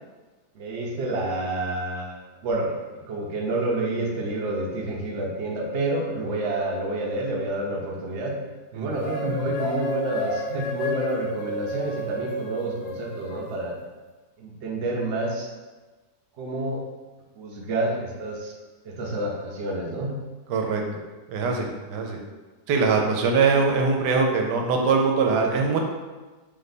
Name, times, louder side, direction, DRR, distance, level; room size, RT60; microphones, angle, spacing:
voice 1, 0.5-2.8 3.1-8.3 8.7-13.8 14.4-15.5 16.4-16.8 17.4-18.5 18.8-20.1, right 2 dB, 55° right, -1 dB, 0.8 m, -29 dB
sound 1, 9.0-13.5, equal, 80° left, 1.3 m, -31 dB
voice 2, 20.5-20.8 21.3-22.2 22.7-25.8, right 4 dB, 85° right, 2 dB, 1.2 m, -22 dB
3.3 x 3.3 x 4.0 m, 1.2 s
omnidirectional pair, 1.8 m